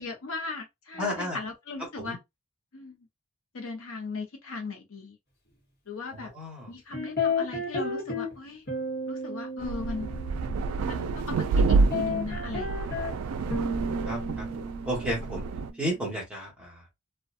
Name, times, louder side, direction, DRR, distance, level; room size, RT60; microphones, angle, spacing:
voice 1, 0.0-2.2 2.7-3.1 3.5-5.2 5.9-6.3 6.7-8.6 9.1-10.1 10.9-13.1, left 4 dB, 65° left, 0.7 m, -38 dB
voice 2, 1.0-1.4 2.0-2.2 6.2-6.7 14.1-14.5 14.8-15.4 15.8-16.8, equal, 5° right, 1.1 m, -32 dB
sound 1, 6.9-8.3 8.7-11.4 11.7-16.0, left 2 dB, 45° left, 1.1 m, -33 dB
sound 2, 9.6-15.7, right 4 dB, 75° right, 0.3 m, -28 dB
2.5 x 2.2 x 2.4 m
head